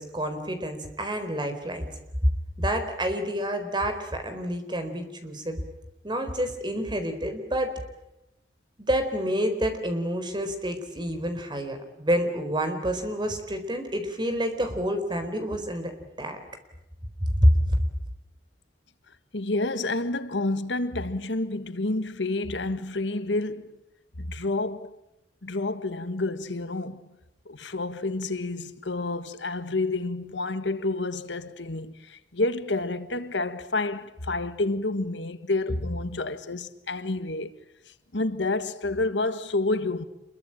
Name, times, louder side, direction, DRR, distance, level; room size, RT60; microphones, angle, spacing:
voice 1, 0.0-1.9 2.6-5.6 6.0-7.7 8.8-16.4 17.2-17.7, equal, 25° right, 4.2 m, -28 dB
voice 2, 19.3-23.8 24.2-25.0 25.4-27.0 27.4-37.5 38.1-40.0, left 2 dB, 80° left, 1.6 m, -29 dB
27.5 x 22.5 x 9.0 m
head